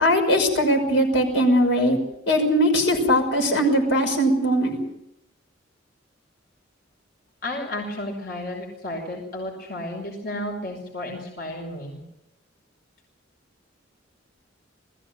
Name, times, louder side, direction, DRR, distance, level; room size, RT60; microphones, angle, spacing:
voice 1, 0.0-2.0 2.3-4.8, equal, 70° left, 2 dB, 5.8 m, -20 dB
voice 2, 7.4-12.0, left 1 dB, 55° left, 1 dB, 5.1 m, -32 dB
21.0 x 15.0 x 9.4 m, 0.83 s
head